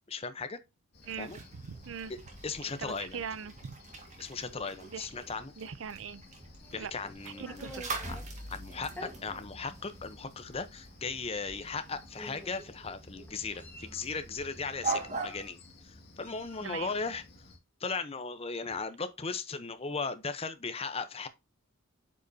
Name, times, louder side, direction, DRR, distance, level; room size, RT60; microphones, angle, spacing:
voice 1, 0.1-0.6 1.2-1.4 2.1-2.2 2.4-3.2 4.2-5.5 6.7-7.6 8.1-8.2 8.5-17.2 17.8-21.3, left 4 dB, 30° left, 0.7 m, -37 dB
Cricket, 0.9-17.6, left 2 dB, 50° left, 2.0 m, -55 dB
sound 1, 1.0-15.5, right 3 dB, 35° right, 1.8 m, -43 dB
voice 2, 1.1-2.1 2.8-3.8 4.9-5.1 5.6-6.2 6.8-6.9 7.2-7.8 16.6-17.0, right 6 dB, 65° right, 0.5 m, -40 dB
Meow, 6.6-8.2 8.9-9.1 10.0-10.1 10.4-10.7 11.7-11.8 12.2-12.7 13.3-14.0 14.8-15.6 16.2-16.9, left 1 dB, 10° left, 1.3 m, -49 dB
8.4 x 5.3 x 2.7 m
head